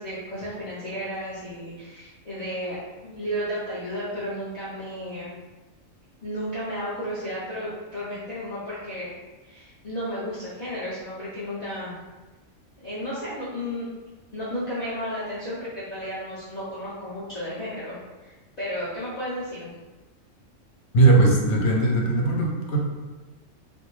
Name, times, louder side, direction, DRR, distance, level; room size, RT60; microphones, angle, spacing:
voice 1, 0.0-2.8 3.0-5.3 6.2-9.1 9.4-12.0 12.8-13.9 14.3-18.3 18.6-19.7, equal, 50° left, -10 dB, 0.5 m, -33 dB
voice 2, 20.9-22.8, right 3 dB, 65° left, -2 dB, 0.8 m, -19 dB
2.5 x 2.0 x 3.0 m, 1.2 s
omnidirectional pair, 1.4 m